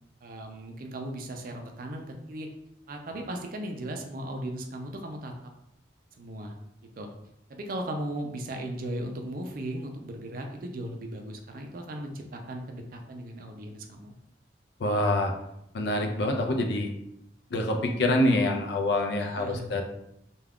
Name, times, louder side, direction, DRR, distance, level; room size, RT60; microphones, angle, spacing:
voice 1, 0.2-2.5 2.9-5.3 6.2-6.5 7.0-7.1 7.5-14.1 19.2-19.7, right 1 dB, 50° right, 3 dB, 0.4 m, -37 dB
voice 2, 14.8-15.3 15.7-16.9 17.5-19.8, left 1 dB, 65° left, 4 dB, 0.4 m, -26 dB
2.3 x 2.3 x 3.4 m, 0.79 s
head